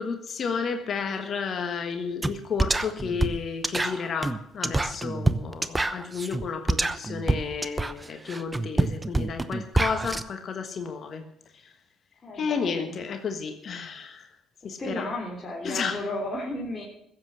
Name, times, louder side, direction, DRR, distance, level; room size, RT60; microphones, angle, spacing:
voice 1, 0.0-11.2 11.5-11.7 12.3-14.3 14.6-15.1 15.6-16.0, left 5 dB, 50° left, 7 dB, 1.4 m, -32 dB
sound 1, 2.2-2.3 2.6-10.2, right 2 dB, 15° right, 0.9 m, -26 dB
voice 2, 12.2-13.0 14.6-16.8, left 1 dB, 30° left, -3 dB, 3.5 m, -34 dB
15.5 x 7.9 x 7.4 m, 0.77 s
hypercardioid pair, 65°, 0 cm